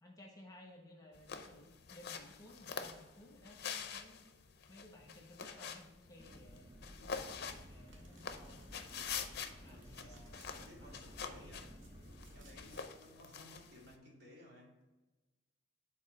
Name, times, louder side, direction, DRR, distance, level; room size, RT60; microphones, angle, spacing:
voice 1, 0.0-4.3 4.7-9.1 9.5-11.6, left 1 dB, 20° left, 0 dB, 1.1 m, -58 dB
sound 1, 1.1-13.9, left 6 dB, 55° left, 0.6 m, -47 dB
sound 2, 6.2-12.8, equal, 25° right, 0.8 m, -55 dB
Domestic sounds home sounds, 7.9-10.5 11.2-12.9, right 2 dB, 85° right, 1.7 m, -66 dB
voice 2, 9.6-11.7 12.3-14.8, equal, 60° right, -3 dB, 2.2 m, -58 dB
7.3 x 4.1 x 4.3 m, 1.1 s
head